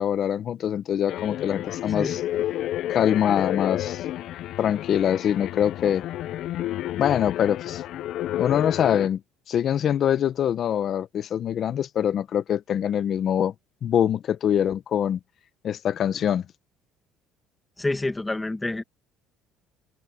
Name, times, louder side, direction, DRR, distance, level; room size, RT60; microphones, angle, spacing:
voice 1, 0.0-2.2 2.9-4.0 4.6-6.0 7.0-7.8 8.4-9.2 9.5-13.5 13.8-15.2 15.6-16.4, left 9 dB, 45° left, 0.9 m, -24 dB
sound 1, 1.1-9.1, left 13 dB, 60° left, 0.4 m, -30 dB
voice 2, 17.8-18.8, left 2 dB, 10° left, 1.5 m, -28 dB
cardioid pair, 140°, 0 cm